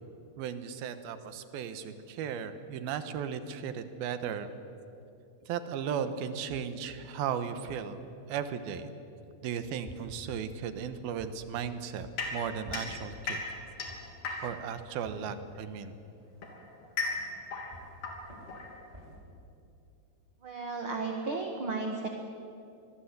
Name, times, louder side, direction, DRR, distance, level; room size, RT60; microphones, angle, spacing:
voice 1, 0.4-4.5 5.5-8.0 8.3-8.9 9.4-13.4 14.4-15.9, right 7 dB, 75° right, 10 dB, 2.9 m, -36 dB
sound 1, 9.6-19.1, equal, 10° right, 5.9 m, -51 dB
sound 2, 12.2-14.8 15.8-19.2, left 4 dB, 70° left, 4.9 m, -37 dB
voice 2, 20.4-22.1, right 3 dB, 50° right, 3 dB, 1.7 m, -34 dB
25.0 x 20.5 x 8.2 m, 2.7 s
omnidirectional pair, 4.6 m